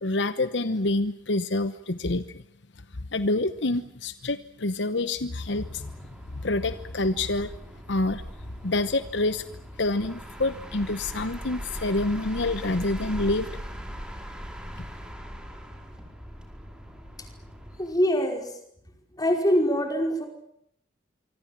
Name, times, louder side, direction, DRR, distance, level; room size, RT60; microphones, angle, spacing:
voice 1, 0.0-2.4 3.1-5.9 6.4-7.5 7.9-8.2 8.6-9.5 9.8-13.5, left 2 dB, 65° left, 12 dB, 1.0 m, -27 dB
sound 1, 5.3-18.0, equal, 5° right, 4.9 m, -40 dB
voice 2, 17.8-18.6 19.1-20.3, equal, 20° left, 4 dB, 5.1 m, -24 dB
26.0 x 25.0 x 7.4 m, 0.70 s
head